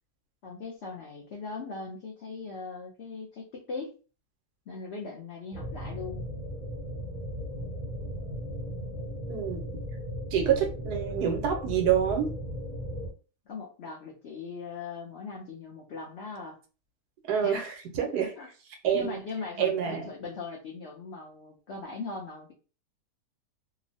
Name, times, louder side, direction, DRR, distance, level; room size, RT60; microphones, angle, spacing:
voice 1, 0.4-3.9 4.7-6.2 13.5-16.6 17.4-17.6 18.0-18.5 18.9-22.5, left 4 dB, 80° left, -1 dB, 0.6 m, -40 dB
sound 1, 5.5-13.1, equal, 30° right, 1.1 m, -36 dB
voice 2, 9.3-9.6 10.3-12.3 17.3-18.3 18.8-19.2 19.6-20.1, right 8 dB, 80° right, 4 dB, 1.2 m, -27 dB
2.9 x 2.0 x 2.6 m, 0.35 s
omnidirectional pair, 1.7 m